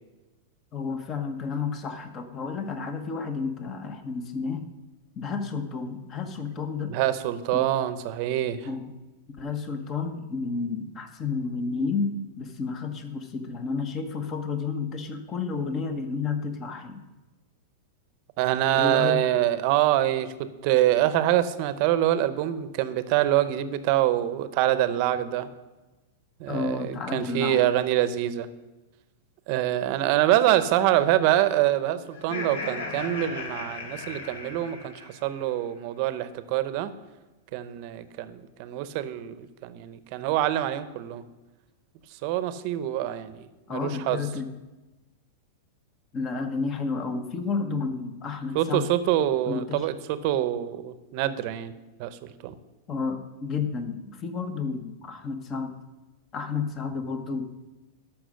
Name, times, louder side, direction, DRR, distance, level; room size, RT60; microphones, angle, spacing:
voice 1, 0.7-4.7 5.2-7.0 7.5-7.6 8.6-8.9 9.3-17.0 18.8-19.2 26.5-27.6 43.7-44.5 46.1-48.9 49.5-49.9 52.9-55.7 56.3-57.4, left 5 dB, 25° left, 8 dB, 1.1 m, -31 dB
voice 2, 6.9-8.7 18.4-25.5 26.4-28.5 29.5-36.9 37.5-41.2 42.2-44.2 48.5-51.7 52.0-52.5, right 13 dB, 45° right, 13 dB, 0.7 m, -25 dB
Laughter, 32.1-35.4, left 3 dB, 80° left, 2.3 m, -36 dB
13.0 x 6.0 x 6.4 m, 1.1 s
supercardioid pair, 155°, 0 cm